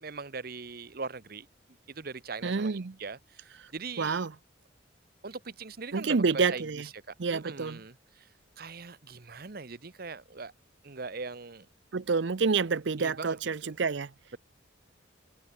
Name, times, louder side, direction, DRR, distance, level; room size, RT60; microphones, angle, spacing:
voice 1, 0.0-1.5 1.9-4.3 5.2-6.7 7.3-8.3 8.6-10.5 10.8-11.7 13.0-13.4 13.6-13.8, right 4 dB, 50° right, 1.0 m, -41 dB
voice 2, 2.4-3.0 4.0-4.3 5.9-6.9 7.2-7.8 11.9-14.1, right 4 dB, 65° right, 0.6 m, -28 dB
head